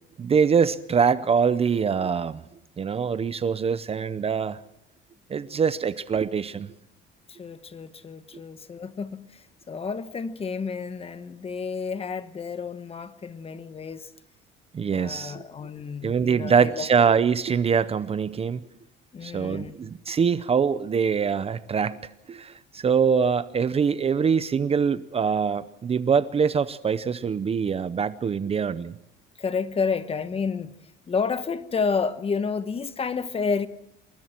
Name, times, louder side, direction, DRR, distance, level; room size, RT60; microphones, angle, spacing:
voice 1, 0.2-2.4 2.8-4.6 5.3-6.7 14.7-15.4 16.0-18.6 19.2-22.0 22.3-29.0, right 6 dB, 30° right, 0.7 m, -24 dB
voice 2, 7.3-14.1 14.9-16.9 19.1-19.8 29.4-30.7 31.1-33.7, left 5 dB, 30° left, 1.1 m, -30 dB
27.5 x 21.5 x 4.5 m
cardioid pair, 130°, 20 cm